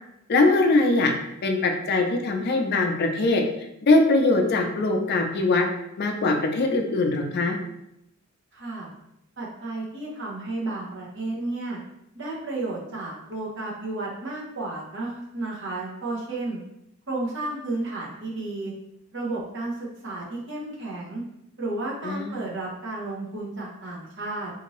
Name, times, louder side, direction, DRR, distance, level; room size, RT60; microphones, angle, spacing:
voice 1, 0.3-1.1 1.4-3.4 3.8-5.6 6.0-7.6 22.0-22.3, left 2 dB, 50° left, 3 dB, 0.4 m, -21 dB
voice 2, 8.5-8.9 9.4-11.8 12.1-16.6 17.1-18.7 19.1-21.2 21.6-24.5, right 2 dB, 60° right, -3 dB, 0.9 m, -32 dB
2.7 x 2.5 x 3.0 m, 0.81 s
head